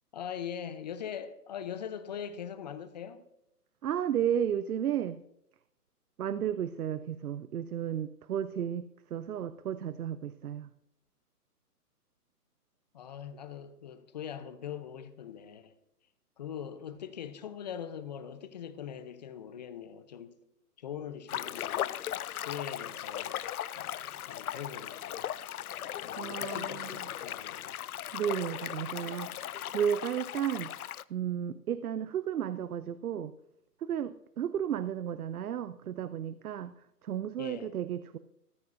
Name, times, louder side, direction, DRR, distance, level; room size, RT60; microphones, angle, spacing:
voice 1, 0.1-3.2 12.9-15.7 16.4-20.4 20.8-21.9 22.5-23.5 23.8-25.3 26.0-27.8 37.4-37.7, left 8 dB, 30° left, 0.6 m, -42 dB
voice 2, 3.8-5.2 6.2-10.7 26.2-26.9 28.1-33.3 33.8-38.2, right 9 dB, 65° right, 0.7 m, -33 dB
sound 1, 21.3-31.0, left 11 dB, 70° left, 0.5 m, -37 dB
14.0 x 14.0 x 2.6 m
hypercardioid pair, 140°, 47 cm